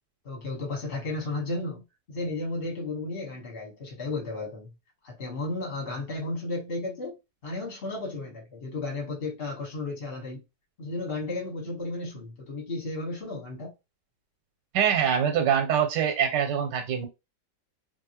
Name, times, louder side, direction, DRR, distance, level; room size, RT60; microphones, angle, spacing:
voice 1, 0.2-1.8 2.1-4.7 5.0-7.1 7.4-10.4 10.8-13.7, left 2 dB, 40° left, 1.2 m, -33 dB
voice 2, 14.7-17.1, right 8 dB, 85° right, 1.3 m, -24 dB
2.8 x 2.6 x 2.8 m
omnidirectional pair, 1.8 m